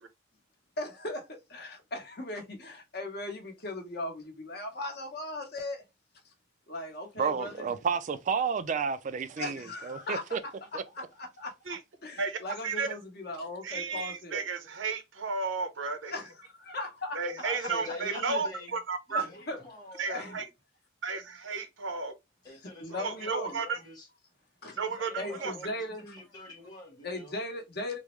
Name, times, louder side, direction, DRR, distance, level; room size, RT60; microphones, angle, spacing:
voice 1, 0.8-5.8 6.7-7.6 9.4-10.2 10.9-11.5 12.0-14.4 16.1-17.2 19.1-19.6 20.1-20.4 22.8-23.5 24.6-24.7 25.2-26.2 27.0-28.0, left 2 dB, 55° left, 1.0 m, -38 dB
voice 2, 7.2-10.4 10.7-10.8, right 6 dB, 40° right, 0.3 m, -31 dB
voice 3, 12.2-12.9 13.6-16.1 17.1-19.2 20.0-20.4 21.0-22.1 23.0-23.8 24.8-25.5, right 4 dB, 75° right, 0.7 m, -33 dB
voice 4, 17.4-18.8 19.1-20.4 22.4-24.1 24.6-27.4, left 2 dB, 20° left, 1.0 m, -45 dB
3.5 x 2.1 x 3.0 m
head